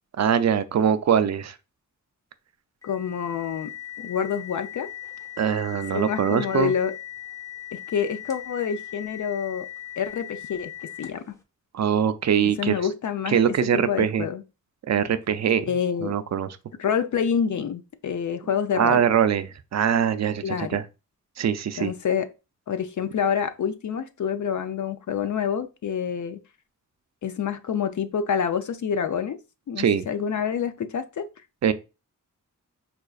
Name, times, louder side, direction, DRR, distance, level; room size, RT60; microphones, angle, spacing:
voice 1, 0.2-1.5 5.4-6.7 11.7-12.8 13.3-14.3 14.9-15.7 16.0-16.5 18.7-20.8 21.4-21.9 29.8-30.1 31.6-31.7, right 8 dB, 55° right, 0.4 m, -22 dB
voice 2, 2.8-3.7 4.0-4.9 5.9-6.9 7.7-9.7 10.0-10.7 11.0-11.3 12.6-14.4 15.6-16.1 16.8-19.0 20.4-20.8 21.8-22.3 22.7-26.4 27.2-29.4 29.7-31.3, left 7 dB, 65° left, 0.5 m, -27 dB
sound 1, 2.8-11.3, left 12 dB, 10° left, 0.7 m, -39 dB
4.9 x 2.3 x 2.3 m
wide cardioid pair, 70°, 32 cm